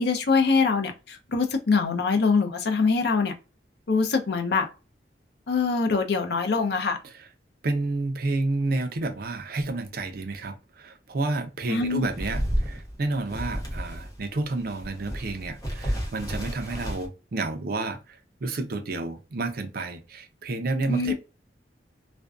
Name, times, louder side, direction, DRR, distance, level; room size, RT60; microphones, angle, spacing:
voice 1, 0.0-3.3 3.9-4.7 5.5-7.0 11.7-12.0 20.9-21.1, left 4 dB, 65° left, 0.6 m, -23 dB
voice 2, 7.6-21.1, right 2 dB, 55° right, 0.5 m, -30 dB
sound 1, 12.0-14.2 14.6-17.1, equal, 20° left, 0.7 m, -31 dB
2.5 x 2.1 x 2.3 m
head